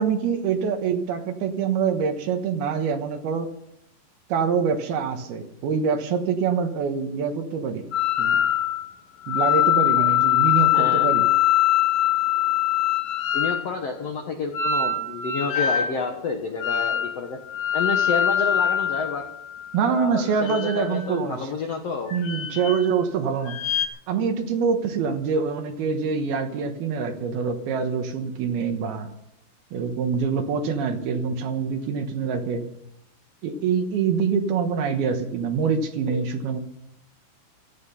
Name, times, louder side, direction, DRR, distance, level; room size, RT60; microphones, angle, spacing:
voice 1, 0.0-3.5 4.3-7.9 8.2-8.4 9.3-11.3 19.7-21.5 22.1-23.6 24.1-29.1 29.7-32.7 33.4-36.6, right 6 dB, 70° right, 6 dB, 2.9 m, -25 dB
sound 1, 7.9-8.9 9.2-13.7 14.5-15.9 16.6-17.2 17.5-19.7 20.3-21.2 22.1-23.1 23.5-23.9, left 11 dB, 55° left, 3.0 m, -23 dB
voice 2, 10.7-11.1 13.3-17.4 17.7-19.2 19.8-22.1, left 4 dB, 75° left, 4 dB, 1.4 m, -29 dB
16.5 x 13.5 x 5.6 m, 0.79 s
omnidirectional pair, 5.1 m